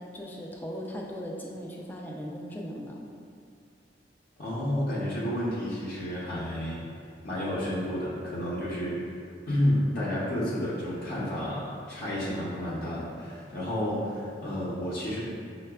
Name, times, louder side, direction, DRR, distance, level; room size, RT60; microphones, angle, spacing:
voice 1, 0.0-3.1, equal, 10° left, -2 dB, 0.3 m, -38 dB
voice 2, 4.4-6.8 7.2-9.0 9.5-15.2, equal, 55° left, -8 dB, 0.6 m, -30 dB
5.5 x 2.2 x 2.2 m, 2.6 s
head